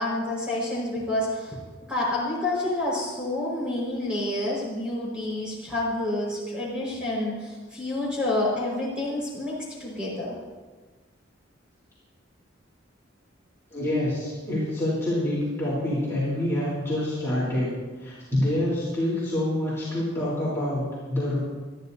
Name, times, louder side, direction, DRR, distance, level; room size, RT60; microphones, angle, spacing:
voice 1, 0.0-1.6 1.9-10.4, left 1 dB, 5° right, -5 dB, 5.1 m, -28 dB
voice 2, 13.7-17.7 18.0-21.4, left 1 dB, 15° left, -9 dB, 3.7 m, -26 dB
21.0 x 13.0 x 2.8 m, 1.4 s
head